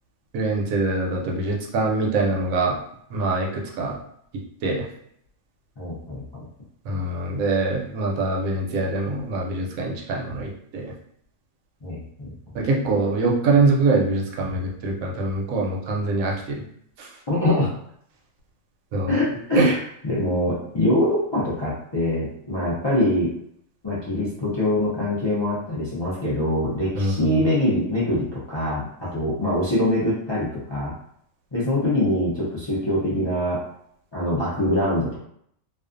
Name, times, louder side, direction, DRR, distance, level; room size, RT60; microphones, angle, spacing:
voice 1, 0.3-2.8 3.1-4.0 4.6-4.9 6.8-10.9 12.5-16.6 17.0-17.1 18.9-19.2 19.6-19.8 27.0-27.3, right 3 dB, 80° right, -1 dB, 1.0 m, -24 dB
voice 2, 5.8-6.5 11.8-12.3 17.3-17.7 19.1-19.8 20.0-23.3 23.8-30.9 31.5-33.6 34.1-35.2, left 1 dB, 40° left, -9 dB, 0.4 m, -24 dB
2.4 x 2.3 x 2.5 m, 0.69 s
omnidirectional pair, 1.4 m